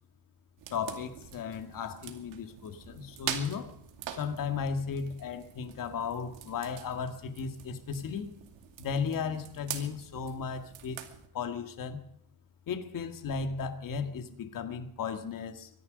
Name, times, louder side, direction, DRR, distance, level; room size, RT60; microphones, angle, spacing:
sound 1, 0.6-11.3, right 10 dB, 85° right, 2.5 m, -44 dB
voice 1, 0.7-3.7 4.1-8.3 8.8-11.0 11.3-12.0 12.7-15.7, left 6 dB, 50° left, 8 dB, 2.0 m, -35 dB
24.0 x 11.0 x 5.3 m, 0.76 s
cardioid pair, 155°, 44 cm